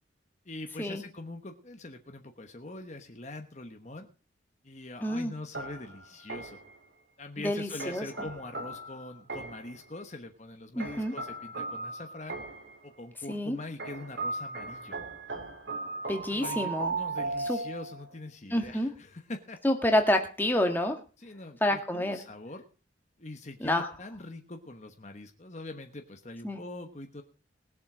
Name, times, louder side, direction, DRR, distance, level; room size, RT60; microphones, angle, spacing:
voice 1, 0.4-4.1 4.6-6.6 7.2-12.4 12.8-15.0 16.3-19.6 21.2-22.6 23.2-27.2, left 2 dB, 35° left, 5 dB, 1.2 m, -43 dB
voice 2, 5.0-5.3 7.4-8.0 10.7-11.1 13.3-13.6 16.1-17.0 17.5-17.6 18.5-18.9 19.6-21.0 21.6-22.2 23.6-23.9 26.4-26.6, left 1 dB, 10° left, 4 dB, 1.7 m, -28 dB
sound 1, 5.5-6.8 7.8-9.8 10.8-12.8 13.8-18.1, right 3 dB, 65° right, 2.4 m, -37 dB
20.0 x 7.4 x 5.0 m, 0.36 s
head